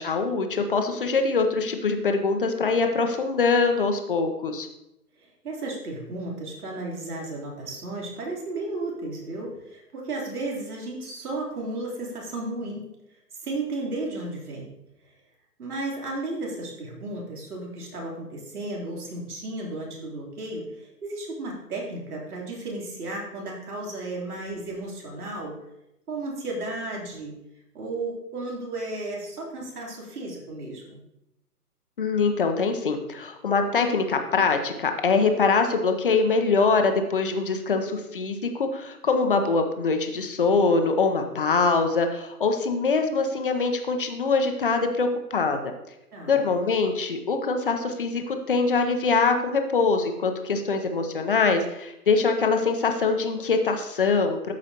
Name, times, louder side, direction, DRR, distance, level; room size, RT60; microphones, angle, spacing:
voice 1, 0.0-4.7 32.0-45.7 46.3-54.5, left 4 dB, 35° left, 6 dB, 0.8 m, -23 dB
voice 2, 5.2-12.9 13.4-14.7 15.6-25.6 26.1-27.3 27.7-31.0 46.1-46.4, right 2 dB, 70° right, -3 dB, 3.4 m, -34 dB
13.5 x 5.2 x 2.9 m, 0.86 s
hypercardioid pair, 160°, 47 cm